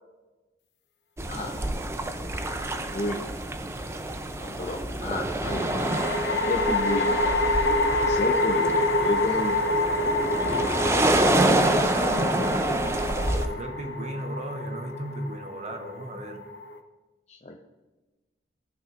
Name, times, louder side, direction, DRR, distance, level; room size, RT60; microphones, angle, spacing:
sound 1, 1.2-13.5, right 1 dB, 15° right, 0.5 m, -27 dB
sound 2, 2.3-3.0 5.4-16.8, left 2 dB, 80° left, 0.9 m, -27 dB
voice 1, 2.7-3.2 4.4-5.7 6.4-7.1 7.9-10.6 10.9-11.2 17.3-17.6, left 1 dB, 40° left, 1 dB, 0.6 m, -32 dB
voice 2, 11.4-12.3 13.3-16.4, right 1 dB, 40° right, 5 dB, 0.8 m, -35 dB
15.0 x 6.1 x 2.5 m, 1.1 s
head